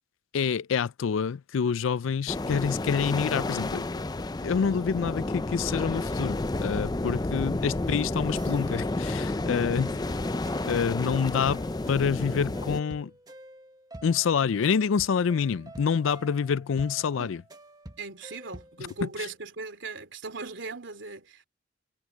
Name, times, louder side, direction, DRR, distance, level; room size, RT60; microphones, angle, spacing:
voice 1, 0.3-4.0 4.4-10.0 10.7-11.6 11.9-13.1 14.0-17.4 19.0-19.3, left 6 dB, 75° left, 0.4 m, -27 dB
sound 1, 2.3-12.8, left 2 dB, 20° left, 0.4 m, -31 dB
sound 2, 8.3-19.0, right 1 dB, 20° right, 1.2 m, -47 dB
voice 2, 18.0-21.5, right 3 dB, 65° right, 3.1 m, -39 dB
head